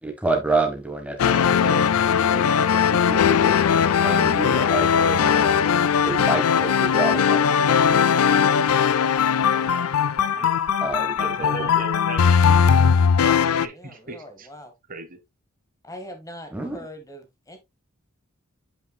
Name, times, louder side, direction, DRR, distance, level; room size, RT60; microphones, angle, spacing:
voice 1, 0.0-1.8 2.3-2.4 2.7-3.5 4.0-5.5 6.0-8.0 10.8-11.5 16.5-16.8, right 3 dB, 5° right, 1.4 m, -28 dB
sound 1, 1.2-13.7, left 7 dB, 85° left, 0.4 m, -19 dB
voice 2, 11.2-14.5 14.9-15.2, right 3 dB, 40° right, 1.0 m, -38 dB
voice 3, 13.7-14.7 15.8-17.6, equal, 15° left, 1.5 m, -41 dB
8.1 x 5.7 x 2.2 m
head